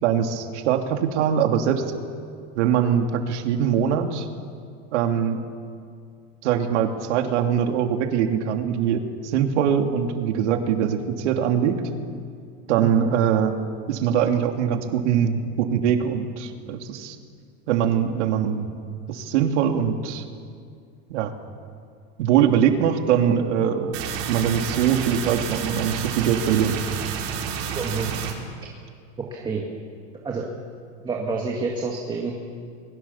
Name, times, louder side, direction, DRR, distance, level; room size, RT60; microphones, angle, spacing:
voice 1, 0.0-1.8 2.5-4.3 4.9-5.4 6.4-11.8 12.7-13.6 13.9-17.2 17.7-18.7 19.1-20.2 21.1-21.3 22.2-23.9 24.2-26.8, right 8 dB, 90° right, 4 dB, 2.9 m, -22 dB
voice 2, 12.8-13.1 27.8-28.1 29.3-29.7 30.2-30.5 31.0-32.3, right 4 dB, 15° right, -1 dB, 2.0 m, -28 dB
sound 1, 23.9-28.3, right 7 dB, 55° right, 4.9 m, -30 dB
29.5 x 22.0 x 7.2 m, 2.2 s
supercardioid pair, 170°, 34 cm